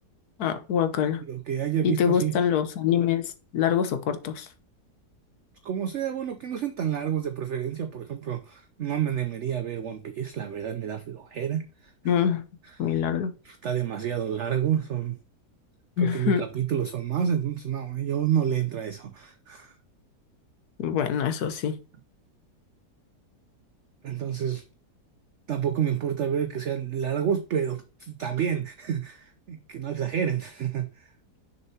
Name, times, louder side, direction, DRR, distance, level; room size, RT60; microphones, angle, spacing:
voice 1, 0.4-1.2 1.8-4.5 12.0-12.4 12.8-13.3 16.0-16.4 20.8-21.8, left 8 dB, 70° left, 1.3 m, -25 dB
voice 2, 1.3-2.3 5.6-11.9 13.4-15.2 16.0-19.7 24.0-24.6 25.5-31.1, right 9 dB, 60° right, 0.7 m, -29 dB
6.7 x 5.5 x 2.8 m
omnidirectional pair, 1.8 m